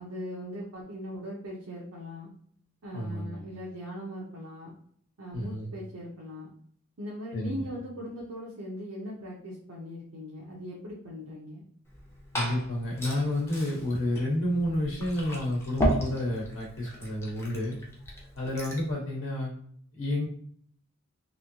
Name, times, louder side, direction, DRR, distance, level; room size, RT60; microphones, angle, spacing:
voice 1, 0.0-2.3 2.8-4.7 5.2-6.5 7.0-11.6, equal, 90° right, -4 dB, 0.7 m, -39 dB
voice 2, 2.9-3.4 5.3-5.7 7.3-7.7 12.3-17.7 18.4-19.5 19.9-20.3, left 1 dB, 60° left, -4 dB, 1.0 m, -30 dB
Liquid, 11.8-18.9, equal, 10° left, 0.6 m, -35 dB
3.1 x 2.7 x 2.7 m, 0.62 s
head